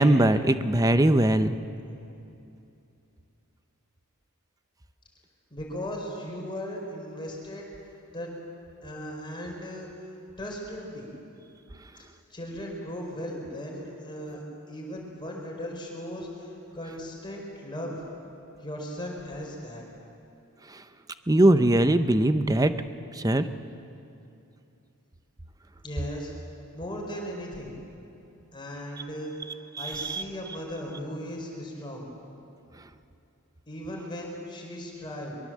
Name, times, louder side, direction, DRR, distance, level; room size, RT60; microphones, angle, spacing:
voice 1, 0.0-1.6 21.3-22.7 23.2-23.4 30.0-30.2, right 1 dB, 15° right, 10 dB, 0.7 m, -20 dB
voice 2, 5.5-7.7 8.1-8.3 8.8-9.9 10.4-11.1 12.0-18.0 18.6-19.9 25.8-26.3 26.7-27.7 28.5-29.3 29.8-32.1 33.7-35.4, equal, 20° left, -1 dB, 4.9 m, -37 dB
23.0 x 22.5 x 7.6 m, 2.7 s
head